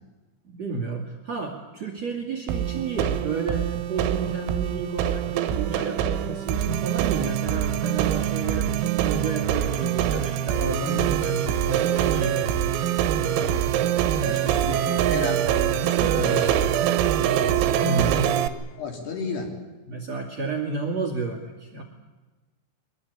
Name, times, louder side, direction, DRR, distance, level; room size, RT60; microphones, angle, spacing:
voice 1, 0.4-12.5 14.1-14.6 17.8-18.2 19.9-21.8, right 4 dB, 40° right, 2 dB, 2.8 m, -31 dB
sound 1, 2.5-18.5, right 10 dB, 85° right, 3.9 m, -24 dB
voice 2, 14.2-15.4 15.8-16.6 17.7-18.2 18.8-19.5, left 4 dB, 55° left, 2 dB, 5.1 m, -33 dB
24.0 x 21.0 x 8.7 m, 1.2 s
omnidirectional pair, 6.0 m